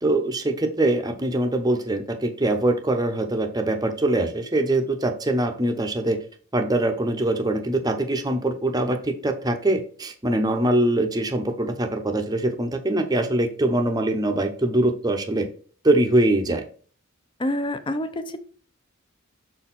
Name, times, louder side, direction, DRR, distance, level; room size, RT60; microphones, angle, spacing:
voice 1, 0.0-6.2 6.5-15.5 15.8-16.6, right 1 dB, 20° right, 5 dB, 0.7 m, -23 dB
voice 2, 17.4-18.4, left 1 dB, 25° left, 10 dB, 0.6 m, -27 dB
6.2 x 4.4 x 4.1 m, 0.42 s
head